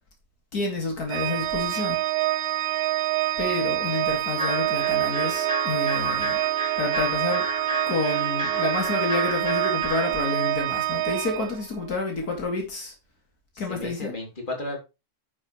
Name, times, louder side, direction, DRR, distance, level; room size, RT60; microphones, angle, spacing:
voice 1, 0.5-2.0 3.4-6.4 6.8-7.5 7.9-12.9 13.6-14.1, left 3 dB, 75° left, 3.1 m, -29 dB
Organ, 1.1-11.9, right 15 dB, 80° right, 1.2 m, -26 dB
sound 1, 4.3-10.2, right 2 dB, 5° right, 2.9 m, -32 dB
voice 2, 13.5-14.8, left 2 dB, 30° left, 3.4 m, -34 dB
10.5 x 6.7 x 3.3 m
omnidirectional pair, 1.6 m